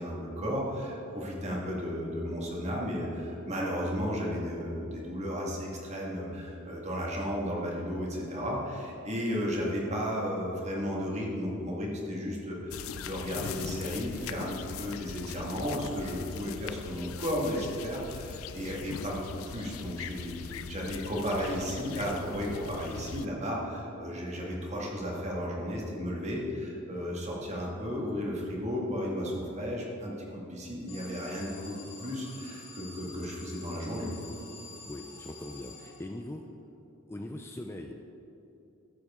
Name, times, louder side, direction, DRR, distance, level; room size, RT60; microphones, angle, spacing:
voice 1, 0.0-34.1, equal, 35° right, -2 dB, 1.8 m, -34 dB
sound 1, 12.7-23.3, left 7 dB, 90° left, 0.4 m, -41 dB
Alarm, 30.9-36.4, left 3 dB, 70° left, 2.2 m, -48 dB
voice 2, 34.9-36.5 37.1-37.9, left 1 dB, 10° left, 3 dB, 0.4 m, -41 dB
13.0 x 7.8 x 3.6 m, 2.8 s
head